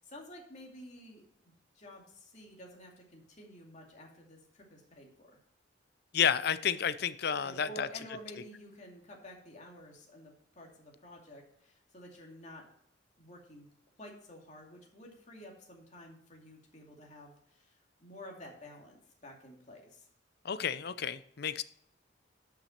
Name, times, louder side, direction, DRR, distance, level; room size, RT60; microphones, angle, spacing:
voice 1, 0.0-1.3 1.7-5.4 7.4-12.7 13.2-13.7 14.0-20.1, left 1 dB, 40° left, 0 dB, 2.4 m, -51 dB
voice 2, 6.1-7.9 20.4-21.6, left 8 dB, 55° left, 15 dB, 0.5 m, -31 dB
11.5 x 6.1 x 4.3 m, 0.70 s
head